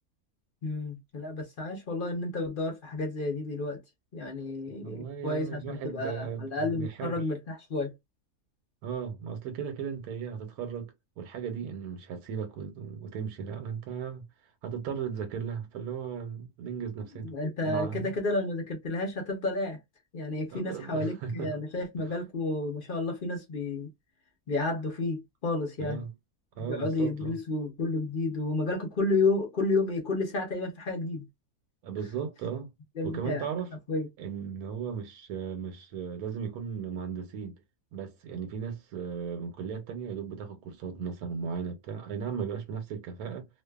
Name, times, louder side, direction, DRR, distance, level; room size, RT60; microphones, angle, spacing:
voice 1, 0.6-3.8 4.1-7.9 17.2-19.8 20.1-23.9 24.5-26.0 26.6-31.3 33.0-33.5 33.9-34.1, left 2 dB, 45° left, 0.7 m, -31 dB
voice 2, 4.7-7.2 8.8-14.2 14.6-17.3 17.6-18.1 20.5-21.5 25.8-26.1 26.6-27.4 31.8-32.7 33.0-33.7 34.2-37.5 37.9-43.5, right 7 dB, 85° right, 1.2 m, -36 dB
2.5 x 2.3 x 2.2 m
omnidirectional pair, 1.6 m